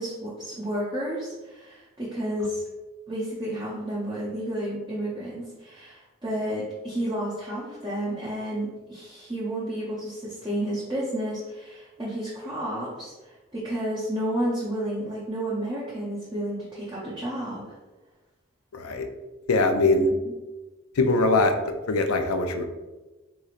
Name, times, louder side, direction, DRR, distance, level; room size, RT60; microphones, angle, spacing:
voice 1, 0.0-2.6 3.1-17.7 20.2-20.3, right 1 dB, 20° right, -8 dB, 0.7 m, -31 dB
voice 2, 18.7-19.1 19.5-20.1 21.0-21.5 21.9-22.6, left 2 dB, 90° left, 6 dB, 0.4 m, -22 dB
3.8 x 3.0 x 2.5 m, 1.2 s
head